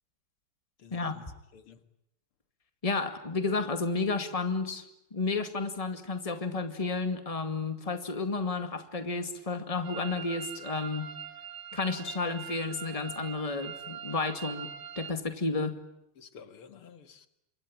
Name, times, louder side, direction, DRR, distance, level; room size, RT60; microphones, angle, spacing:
voice 1, 0.8-1.3 1.5-1.8 16.2-17.3, left 6 dB, 80° left, 9 dB, 2.6 m, -51 dB
voice 2, 2.8-4.8 5.1-11.1 11.7-14.7 15.0-15.8, left 3 dB, 15° left, 8 dB, 2.1 m, -32 dB
sound 1, 9.8-15.1, right 9 dB, 75° right, 2.5 m, -42 dB
27.0 x 24.0 x 8.9 m, 0.82 s
omnidirectional pair, 2.4 m